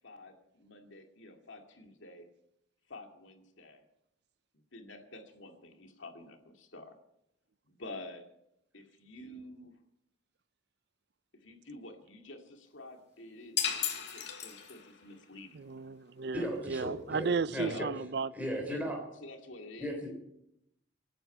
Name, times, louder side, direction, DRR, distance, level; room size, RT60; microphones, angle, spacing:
voice 1, 0.0-2.3 2.9-3.8 4.7-7.0 7.8-8.3 8.7-9.7 11.4-13.9 14.1-15.5 17.6-17.9 18.7-18.9 19.2-19.9, left 2 dB, 80° left, 4 dB, 2.3 m, -48 dB
sound 1, 13.6-15.0, left 8 dB, 60° left, 2.7 m, -34 dB
voice 2, 15.5-18.3, right 4 dB, 55° right, 17 dB, 0.5 m, -34 dB
voice 3, 16.3-17.9 18.3-19.1 19.8-20.1, equal, 10° right, 1 dB, 3.5 m, -36 dB
26.5 x 9.2 x 5.5 m, 0.82 s
head